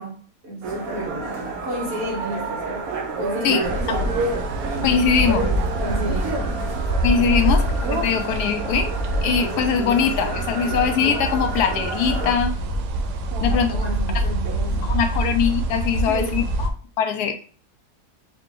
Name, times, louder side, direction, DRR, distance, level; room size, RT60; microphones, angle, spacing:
voice 1, 0.0-4.2 5.8-6.4 7.4-7.5 13.3-15.0 16.1-16.4, right 1 dB, 40° right, 1.9 m, -32 dB
sound 1, 0.6-12.3, right 2 dB, 65° right, 1.2 m, -29 dB
sound 2, 3.6-16.7, right 1 dB, 90° right, 1.2 m, -25 dB
voice 2, 4.8-5.5 7.0-8.9 9.2-12.5 13.4-13.7 14.8-16.7 17.0-17.5, left 7 dB, 80° left, 1.1 m, -22 dB
4.8 x 2.2 x 3.7 m
omnidirectional pair, 1.7 m